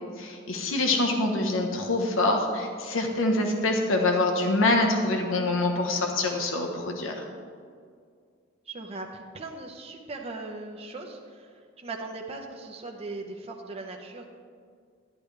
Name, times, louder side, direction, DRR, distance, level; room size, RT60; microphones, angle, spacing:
voice 1, 0.2-7.2, left 2 dB, 90° left, 2 dB, 1.1 m, -25 dB
voice 2, 8.7-14.2, right 3 dB, 30° right, 1 dB, 0.8 m, -39 dB
11.0 x 10.5 x 3.3 m, 2.1 s
head